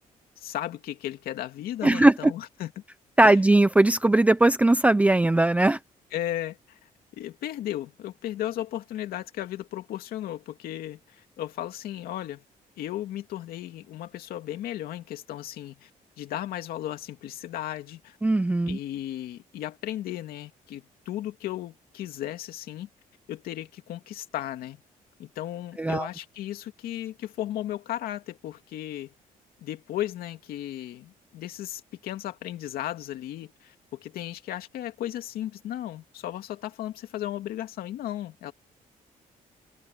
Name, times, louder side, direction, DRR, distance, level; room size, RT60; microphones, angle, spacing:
voice 1, 0.4-2.7 3.2-3.4 6.1-6.8 7.1-12.4 12.8-15.9 16.2-18.2 18.7-22.9 23.3-24.8 25.2-29.1 29.6-38.5, left 13 dB, 85° left, 2.4 m, -35 dB
voice 2, 1.8-2.3 3.2-5.8 18.2-18.8 25.8-26.1, right 2 dB, 10° right, 0.6 m, -19 dB
cardioid pair, 110°, 15 cm